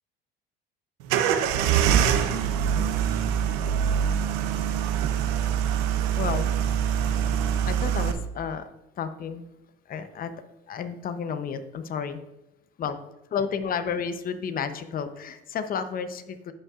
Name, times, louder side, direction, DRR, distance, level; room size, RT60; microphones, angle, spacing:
sound 1, 1.1-8.1, right 8 dB, 85° right, 0.7 m, -24 dB
voice 1, 6.2-6.5 7.7-8.7 9.0-9.5 9.9-10.3 10.7-12.2 12.8-13.0 13.3-16.5, left 6 dB, 45° left, 10 dB, 0.8 m, -31 dB
14.0 x 5.5 x 2.4 m, 0.91 s
supercardioid pair, 90°, 21 cm